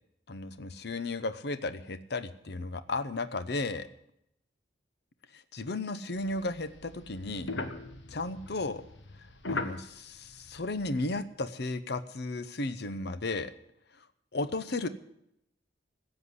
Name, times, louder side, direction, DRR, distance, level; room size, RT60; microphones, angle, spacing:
voice 1, 0.3-3.9 5.3-7.5 8.1-8.8 9.5-13.5 14.3-14.9, left 2 dB, 60° left, 12 dB, 0.8 m, -34 dB
sound 1, 6.1-11.2, left 3 dB, 75° left, 1.4 m, -40 dB
15.5 x 8.0 x 9.6 m, 0.77 s
head